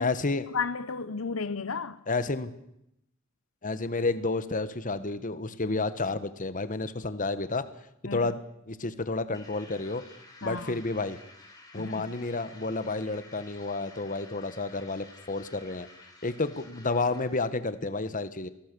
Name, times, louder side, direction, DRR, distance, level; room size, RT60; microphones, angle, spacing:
voice 1, 0.0-0.5 2.1-2.5 3.6-7.6 8.0-8.4 8.7-10.0 10.4-11.2 11.7-15.9 16.2-18.5, left 3 dB, 40° left, 1.4 m, -30 dB
voice 2, 0.5-2.0 8.1-8.3 10.4-10.8 11.8-12.1, left 5 dB, 80° left, 1.0 m, -33 dB
sound 1, 9.3-17.6, left 2 dB, 20° left, 5.0 m, -53 dB
28.5 x 19.5 x 7.0 m
head